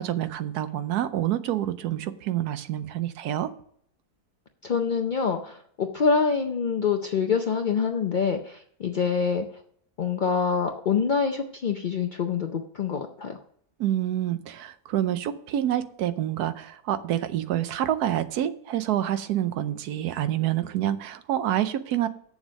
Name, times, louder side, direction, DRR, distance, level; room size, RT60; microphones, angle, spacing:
voice 1, 0.0-3.5 13.8-22.1, right 12 dB, 85° right, 12 dB, 1.2 m, -27 dB
voice 2, 4.6-9.5 10.0-13.4, left 6 dB, 65° left, 4 dB, 0.4 m, -26 dB
7.3 x 7.1 x 6.3 m, 0.66 s
omnidirectional pair, 1.6 m